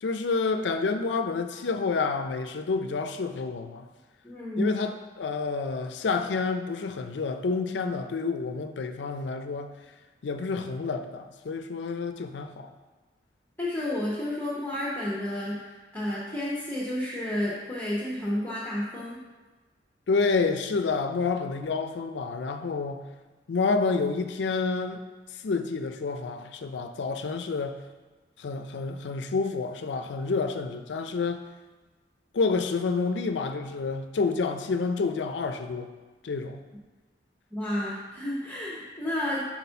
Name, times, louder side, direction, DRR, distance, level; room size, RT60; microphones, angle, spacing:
voice 1, 0.0-3.9 4.6-9.7 10.2-12.7 20.1-23.1 23.5-25.0 25.4-27.8 28.4-31.4 32.3-35.9 36.2-36.6, left 4 dB, 85° left, 8 dB, 0.4 m, -29 dB
voice 2, 4.2-4.7 13.6-19.2 37.5-39.5, left 1 dB, 15° left, -7 dB, 0.8 m, -31 dB
4.3 x 4.1 x 5.6 m, 1.3 s
head